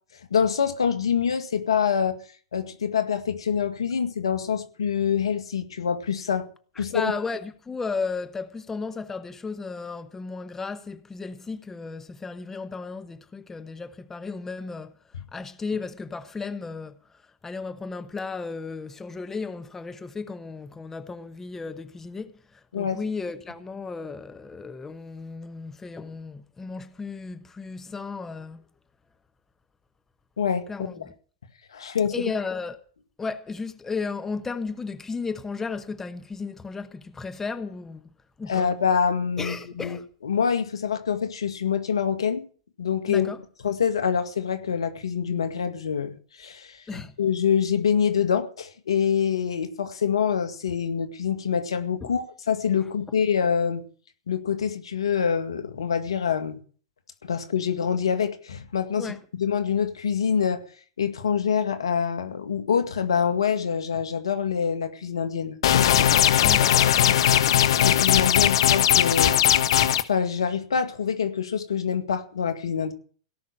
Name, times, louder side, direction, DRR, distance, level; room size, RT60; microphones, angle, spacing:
voice 1, 0.3-2.2 2.5-6.5 6.8-7.1 22.7-23.0 30.4-30.7 31.7-32.1 38.5-40.0 40.2-42.4 42.8-43.3 43.6-53.8 54.3-56.6 57.2-60.6 61.0-65.6 67.8-69.4 70.1-72.9, left 7 dB, 85° left, 2.1 m, -25 dB
voice 2, 6.8-14.9 15.3-17.0 17.4-28.6 30.7-31.1 32.1-32.8 33.2-38.1 38.4-38.7 39.4-40.1 43.1-43.4 46.9-47.1 52.0-52.1 59.0-59.2 66.4-67.2, left 4 dB, 15° left, 1.1 m, -34 dB
sound 1, 65.6-70.0, left 10 dB, 70° left, 1.1 m, -19 dB
17.5 x 6.1 x 10.0 m
hypercardioid pair, 115°, 3 cm